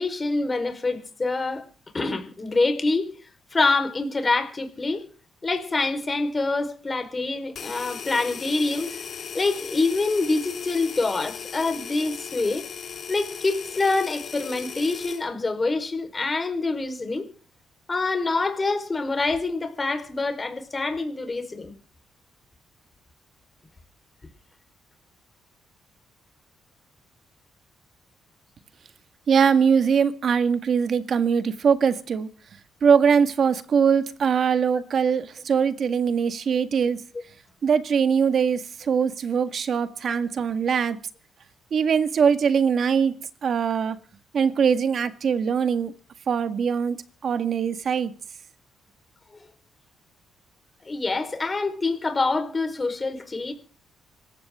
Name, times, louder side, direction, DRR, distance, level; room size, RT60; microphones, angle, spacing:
voice 1, 0.0-1.6 1.9-3.1 3.5-5.1 5.4-9.0 9.3-12.7 13.1-17.3 17.9-21.7 40.0-40.2 49.3-49.5 50.8-53.5, left 3 dB, 25° left, 4.4 m, -26 dB
sound 1, 7.6-15.3, left 7 dB, 55° left, 4.3 m, -37 dB
voice 2, 29.3-32.3 32.8-37.0 37.6-41.0 41.7-43.2 43.4-44.0 44.3-45.9 46.3-48.1, right 6 dB, 55° right, 1.8 m, -22 dB
26.0 x 15.0 x 3.8 m
cardioid pair, 105°, 0 cm